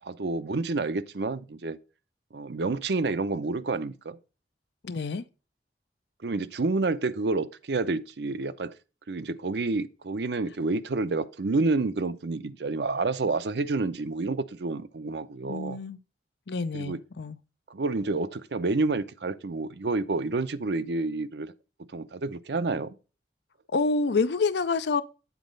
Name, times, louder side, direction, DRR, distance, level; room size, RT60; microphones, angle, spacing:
voice 1, 0.0-1.8 2.3-4.2 6.2-8.7 9.1-15.8 16.7-17.0 17.7-21.5 21.9-23.0, right 3 dB, 75° right, 0.6 m, -29 dB
voice 2, 4.8-5.3 15.4-16.0 16.5-17.4 23.7-25.0, left 4 dB, 75° left, 0.6 m, -27 dB
8.3 x 4.1 x 5.2 m
head